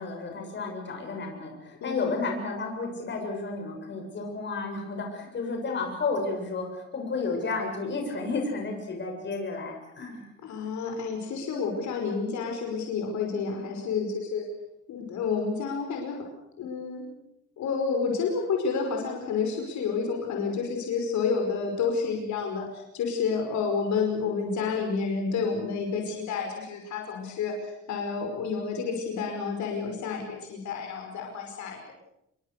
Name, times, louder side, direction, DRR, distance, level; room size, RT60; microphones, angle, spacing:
voice 1, 0.0-10.3, left 3 dB, 35° left, 2 dB, 7.2 m, -32 dB
voice 2, 10.4-14.4 14.9-16.2 16.6-17.1 17.6-31.9, left 5 dB, 65° left, 2 dB, 5.4 m, -30 dB
28.5 x 22.5 x 6.7 m, 0.81 s
cardioid pair, 160°, 30 cm